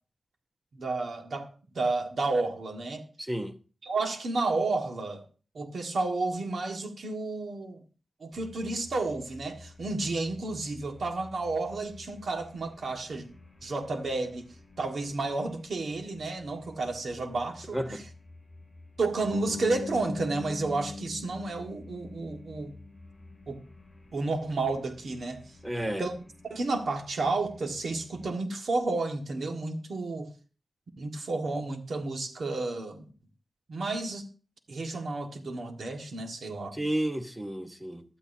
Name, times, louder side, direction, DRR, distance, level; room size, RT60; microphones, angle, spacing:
voice 1, 0.7-1.5 1.7-3.0 3.8-5.2 5.5-7.8 8.2-13.3 13.6-14.5 14.8-18.0 19.0-22.7 23.5-23.6 24.1-25.4 26.0-26.1 26.5-30.3 31.0-33.1 33.7-34.2 34.7-36.8, right 3 dB, 80° right, 1.7 m, -31 dB
voice 2, 3.2-3.5 17.7-18.0 25.6-26.1 36.7-38.0, right 1 dB, 15° right, 1.0 m, -31 dB
sound 1, 8.3-28.3, left 2 dB, ahead, 4.4 m, -52 dB
Bass guitar, 19.3-23.3, left 3 dB, 85° left, 0.9 m, -40 dB
15.5 x 12.0 x 2.7 m
wide cardioid pair, 140°, 0 cm